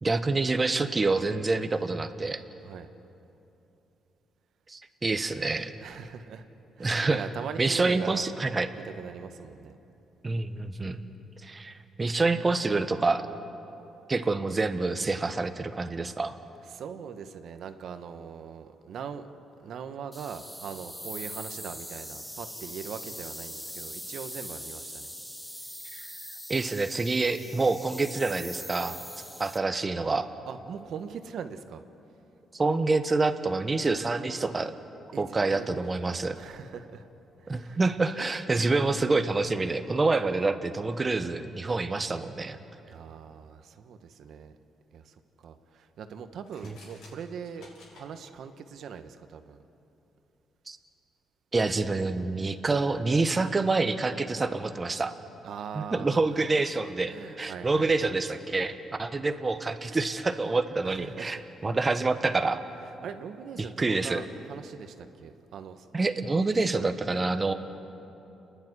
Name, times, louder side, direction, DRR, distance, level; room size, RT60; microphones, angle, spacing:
voice 1, 0.0-2.4 4.7-5.7 6.8-7.2 7.6-8.7 10.2-11.0 11.4-13.3 14.1-16.4 25.9-26.1 26.5-29.0 29.4-30.3 32.5-34.7 35.2-36.4 37.5-42.6 46.6-46.7 50.7-50.8 51.5-55.1 55.7-62.6 63.6-64.2 65.9-67.5, right 3 dB, 25° right, 8 dB, 1.2 m, -27 dB
voice 2, 5.8-6.4 6.8-8.3 8.7-9.8 16.7-19.3 19.6-25.1 30.5-31.8 35.1-37.1 37.4-37.8 42.9-44.6 44.9-49.6 55.4-56.5 57.0-58.1 60.8-61.5 63.0-65.9, right 7 dB, 70° right, 8 dB, 1.2 m, -41 dB
sound 1, 20.1-29.6, equal, 5° left, 1.0 m, -42 dB
sound 2, 46.4-48.1, left 2 dB, 80° left, 6.2 m, -53 dB
29.5 x 10.5 x 9.8 m, 3.0 s
cardioid pair, 90°, 0 cm